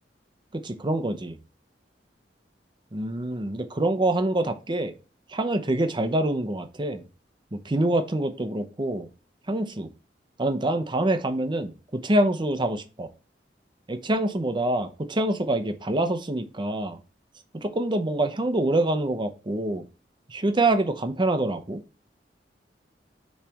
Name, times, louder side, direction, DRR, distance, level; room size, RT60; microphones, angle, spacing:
voice 1, 0.5-1.4 2.9-4.9 5.3-7.0 7.5-9.1 9.5-9.9 10.4-13.1 13.9-17.0 17.5-19.8 20.3-21.8, right 1 dB, 25° right, 8 dB, 0.7 m, -26 dB
8.6 x 3.3 x 3.4 m, 0.33 s
head